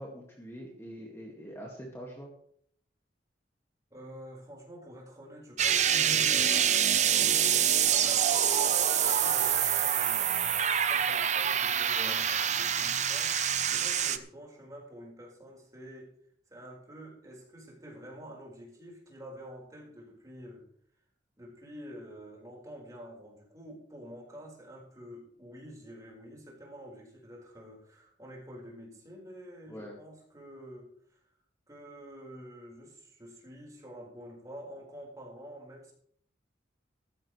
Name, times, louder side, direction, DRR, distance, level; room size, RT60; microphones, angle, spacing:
voice 1, 0.0-2.3 11.9-12.2 29.7-30.0, equal, 15° left, -1 dB, 2.0 m, -44 dB
voice 2, 3.9-16.1 16.5-20.6 21.4-31.2 31.7-35.9, equal, 20° right, -2 dB, 4.6 m, -48 dB
sound 1, 5.6-14.2, right 9 dB, 40° right, 0.8 m, -26 dB
15.5 x 13.5 x 3.2 m, 0.63 s
head